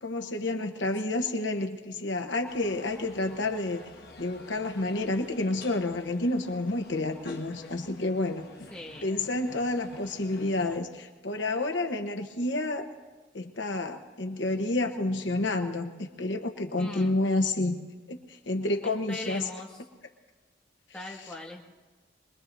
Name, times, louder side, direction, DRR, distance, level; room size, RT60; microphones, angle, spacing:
voice 1, 0.0-3.9 4.2-8.5 9.0-12.9 13.3-17.8 18.1-19.4, left 2 dB, 85° left, 4 dB, 1.1 m, -29 dB
sound 1, 2.5-10.8, left 2 dB, 60° left, 1.7 m, -49 dB
voice 2, 8.7-9.1 16.8-17.1 18.8-19.8 20.9-21.7, left 1 dB, 5° left, -3 dB, 1.9 m, -40 dB
25.0 x 21.0 x 2.7 m, 1.3 s
head